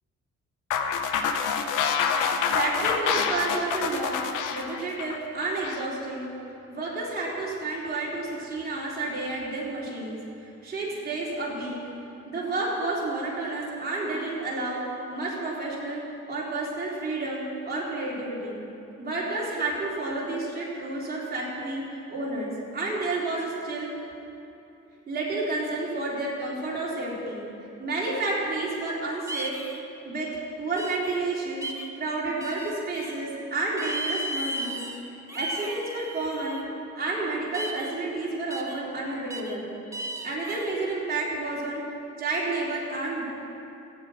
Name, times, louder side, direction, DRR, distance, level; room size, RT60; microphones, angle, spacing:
sound 1, 0.7-5.9, left 6 dB, 90° left, 0.9 m, -27 dB
voice 1, 2.5-4.2 4.5-6.3 6.7-10.2 10.6-11.8 12.3-14.8 15.1-18.6 19.0-21.8 22.1-23.9 25.1-27.4 27.8-29.6 30.1-31.7 32.0-34.8 35.3-36.6 37.0-39.7 40.2-41.8 42.2-43.3, right 2 dB, 30° right, -6 dB, 3.9 m, -30 dB
sound 2, 29.3-29.8 30.8-31.2 31.6-31.9 32.4-33.1 33.8-35.0 35.3-36.6 37.5-37.9 38.5-38.8 39.3-39.5 39.9-40.7, right 1 dB, 10° right, 1.3 m, -35 dB
13.5 x 8.3 x 7.9 m, 2.9 s
cardioid pair, 90°, 30 cm